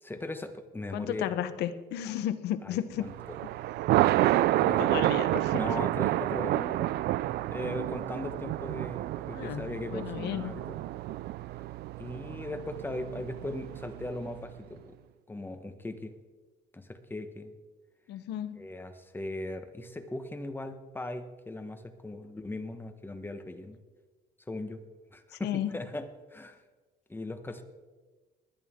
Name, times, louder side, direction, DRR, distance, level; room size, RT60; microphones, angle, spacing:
voice 1, 0.0-1.3 2.6-3.1 4.6-4.9 5.5-6.9 7.5-10.8 12.0-15.0 15.3-16.1 16.7-17.5 18.6-23.8 24.5-24.8 25.1-26.6 27.1-27.6, left 2 dB, 10° left, 8 dB, 1.2 m, -38 dB
voice 2, 0.9-3.1 4.8-5.6 9.3-9.6 9.9-10.6 18.1-18.7 25.4-25.7, left 11 dB, 80° left, 12 dB, 0.9 m, -33 dB
Thunder, 3.0-14.4, right 15 dB, 70° right, 0.4 m, -29 dB
20.5 x 11.0 x 3.7 m, 1.3 s
cardioid pair, 110°, 17 cm